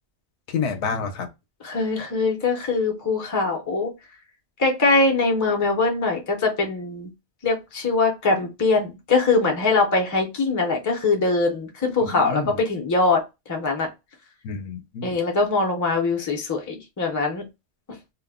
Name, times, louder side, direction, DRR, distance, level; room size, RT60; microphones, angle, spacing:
voice 1, 0.5-1.3 12.0-12.6 14.4-15.1, left 5 dB, 70° left, 0.8 m, -29 dB
voice 2, 1.6-3.9 4.6-7.1 7.4-13.9 15.0-17.4, left 3 dB, 25° left, 0.4 m, -22 dB
2.2 x 2.0 x 3.4 m
omnidirectional pair, 1.2 m